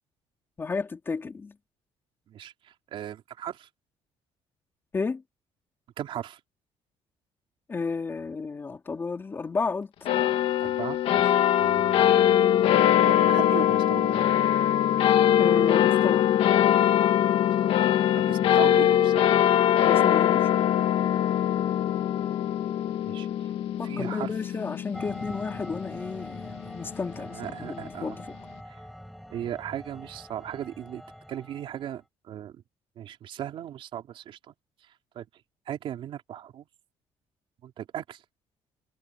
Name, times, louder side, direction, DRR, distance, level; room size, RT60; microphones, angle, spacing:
voice 1, 0.6-1.6 4.9-5.2 7.7-9.9 15.4-16.3 19.8-20.5 23.8-28.4, left 4 dB, 20° left, 3.9 m, -32 dB
voice 2, 2.3-3.7 6.0-6.4 10.6-14.4 17.6-17.7 18.1-19.2 23.0-23.5 23.8-24.3 27.3-28.2 28.7-28.8 29.3-31.0 31.3-32.6 33.0-34.5 35.2-35.3 35.7-36.7 37.6-38.2, right 11 dB, 50° right, 3.8 m, -37 dB
sound 1, 10.1-26.8, left 11 dB, 60° left, 2.0 m, -22 dB
sound 2, 24.9-32.0, equal, ahead, 7.9 m, -44 dB
cardioid pair, 175°, 11 cm